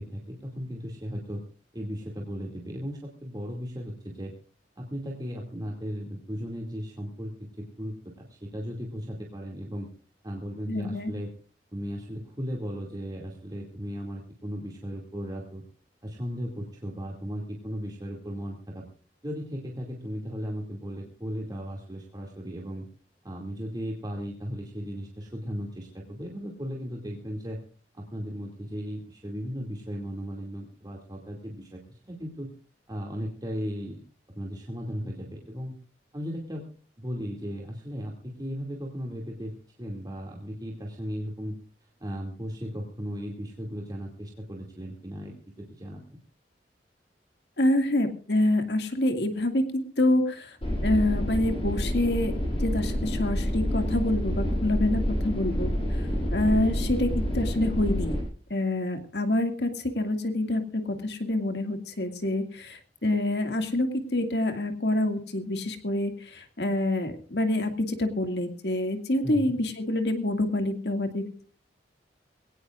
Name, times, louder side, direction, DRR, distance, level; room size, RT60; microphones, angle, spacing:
voice 1, 0.0-1.4 1.7-4.3 4.8-9.9 10.2-11.3 11.7-15.6 16.0-18.8 19.2-22.9 23.2-27.6 27.9-32.5 32.9-34.0 34.3-35.7 36.1-36.7 37.0-41.6 42.0-46.2 69.2-69.6, equal, 25° right, -1 dB, 2.5 m, -36 dB
voice 2, 10.7-11.1 47.6-50.6 50.8-52.3 52.6-55.7 56.3-58.2 58.5-71.4, left 1 dB, 70° left, 6 dB, 2.2 m, -27 dB
sound 1, 50.6-58.2, equal, 35° left, 7.6 m, -28 dB
22.0 x 17.5 x 2.5 m, 0.40 s
head